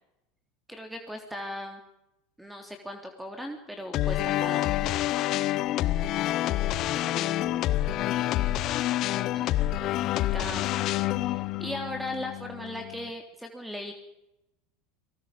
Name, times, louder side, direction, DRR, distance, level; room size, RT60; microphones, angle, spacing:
voice 1, 0.7-1.8 2.4-4.9 9.1-9.5 10.1-10.8 11.1-13.9, left 1 dB, 5° right, 4 dB, 3.2 m, -38 dB
sound 1, 3.9-13.1, left 14 dB, 50° left, 1.0 m, -28 dB
voice 2, 6.4-8.7, left 5 dB, 20° left, 4 dB, 4.2 m, -46 dB
28.5 x 20.0 x 5.2 m, 0.89 s
hypercardioid pair, 80°, 0 cm